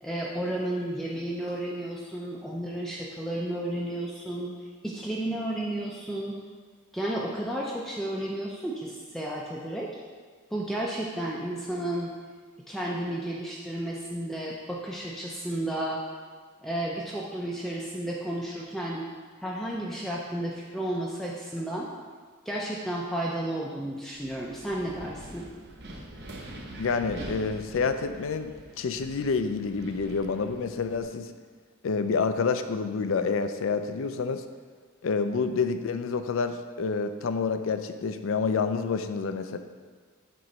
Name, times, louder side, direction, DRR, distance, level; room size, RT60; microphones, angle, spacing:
voice 1, 0.0-4.5 4.8-6.3 6.9-9.9 10.5-12.1 12.7-16.0 16.6-19.1 19.4-21.9 22.5-25.5, right 1 dB, ahead, -4 dB, 0.4 m, -32 dB
Wind, 24.1-31.0, right 1 dB, 50° right, 0.8 m, -44 dB
voice 2, 26.8-28.5 28.8-31.3 31.8-34.4 35.0-39.6, left 5 dB, 65° left, 9 dB, 0.4 m, -28 dB
7.6 x 3.0 x 5.4 m, 1.5 s
head